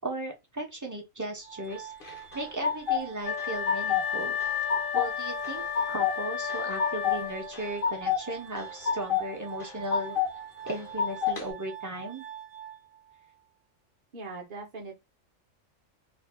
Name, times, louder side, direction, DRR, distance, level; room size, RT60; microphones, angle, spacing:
voice 1, 0.0-1.9 2.3-4.4 4.9-5.6 5.9-10.2 10.6-12.2, right 1 dB, 20° right, 0.6 m, -36 dB
Glass, 1.4-13.4, right 10 dB, 80° right, 1.0 m, -45 dB
sound 1, 2.0-3.0 3.4-4.1 4.4-5.1 5.4-6.2 6.5-7.2 7.5-8.2 8.6-9.3 9.6-10.3 10.7-11.4, left 7 dB, 50° left, 0.8 m, -28 dB
Wind instrument woodwind instrument, 3.2-7.7, left 8 dB, 85° left, 1.0 m, -32 dB
voice 2, 14.1-15.0, right 3 dB, 45° right, 0.9 m, -41 dB
2.6 x 2.3 x 3.4 m
omnidirectional pair, 1.3 m